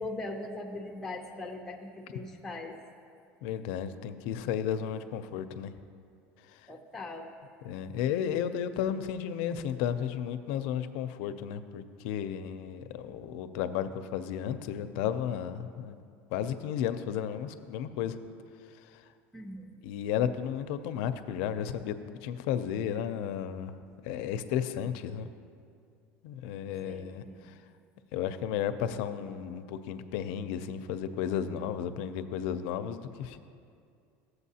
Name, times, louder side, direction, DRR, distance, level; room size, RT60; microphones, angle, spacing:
voice 1, 0.0-2.8 6.7-7.3 19.3-19.8 26.9-27.5, left 2 dB, 5° left, 0 dB, 0.5 m, -40 dB
voice 2, 3.4-5.7 7.6-16.0 16.3-18.2 19.8-23.7 24.0-25.3 26.2-27.2 28.1-33.4, left 9 dB, 70° left, 10 dB, 0.4 m, -33 dB
13.5 x 7.9 x 2.8 m, 2.3 s
cardioid pair, 175°, 5 cm